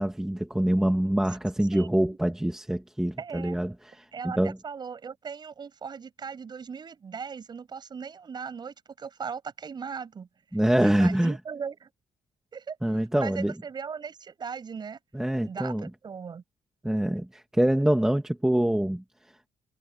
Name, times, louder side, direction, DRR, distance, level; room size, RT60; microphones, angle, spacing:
voice 1, 0.0-4.6 10.5-11.4 12.8-13.5 15.1-15.9 16.8-19.0, right 1 dB, 5° right, 1.4 m, -25 dB
voice 2, 1.7-2.2 3.2-3.6 4.1-10.3 10.8-11.9 12.5-12.8 13.2-15.0 15.4-16.4, right 6 dB, 30° right, 6.8 m, -38 dB
cardioid pair, 175°, 14 cm